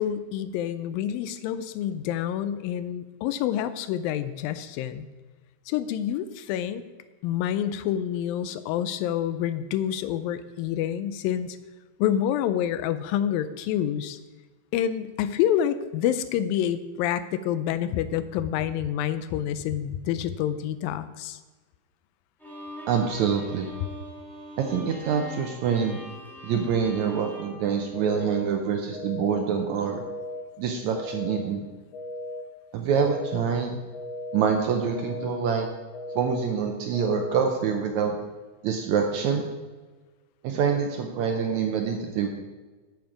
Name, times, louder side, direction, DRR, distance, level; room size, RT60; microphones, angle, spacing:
voice 1, 0.0-5.1 5.7-6.8 7.2-11.6 12.0-14.2 14.7-21.4, left 10 dB, 85° left, 13 dB, 2.4 m, -27 dB
Bowed string instrument, 22.4-28.7, equal, ahead, 1.7 m, -43 dB
voice 2, 22.9-23.7 24.6-26.0 26.4-30.0 30.6-31.6 32.7-33.8 34.3-35.7 36.1-38.2 38.6-39.4 40.4-42.3, right 6 dB, 75° right, 4 dB, 1.7 m, -26 dB
sound 1, 27.9-28.4 28.9-29.4 29.9-30.4 30.9-31.4 31.9-32.4 32.9-33.4 33.9-34.4 34.9-35.4 35.9-36.4 36.9-37.4, left 1 dB, 70° left, 2.2 m, -36 dB
9.0 x 8.0 x 5.1 m, 1.3 s
omnidirectional pair, 4.0 m